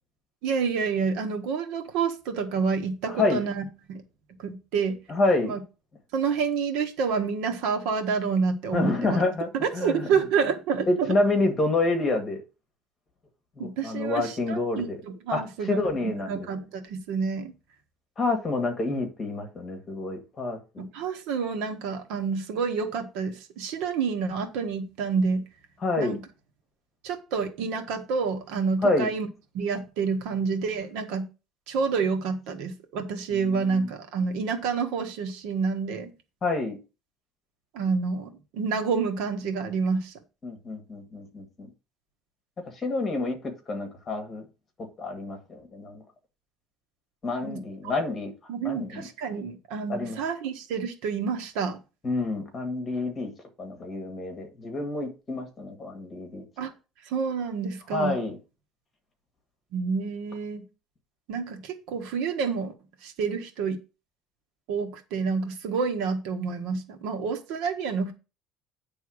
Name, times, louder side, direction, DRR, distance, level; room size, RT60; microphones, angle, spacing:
voice 1, 0.4-3.6 3.9-4.0 4.4-5.0 5.4-5.6 6.1-9.2 9.5-11.1 13.6-17.5 20.8-25.4 26.0-26.2 27.0-29.3 29.5-31.3 31.7-36.1 37.7-40.1 47.4-47.9 48.5-51.8 56.6-56.7 57.0-58.2 59.7-60.6 61.3-62.7 63.0-63.8 64.7-68.1, right 5 dB, 65° right, 1.4 m, -28 dB
voice 2, 3.1-3.4 5.1-5.5 8.7-10.1 10.9-12.4 13.6-15.0 15.3-15.4 15.7-16.4 18.2-20.8 25.8-26.2 28.8-29.1 33.3-33.8 36.4-36.8 40.4-41.7 42.8-44.4 44.8-46.0 47.2-48.3 48.6-49.0 49.9-50.2 52.0-53.3 53.6-56.4 57.9-58.4, left 2 dB, 20° left, 1.8 m, -28 dB
9.7 x 3.5 x 6.3 m
cardioid pair, 165°, 0 cm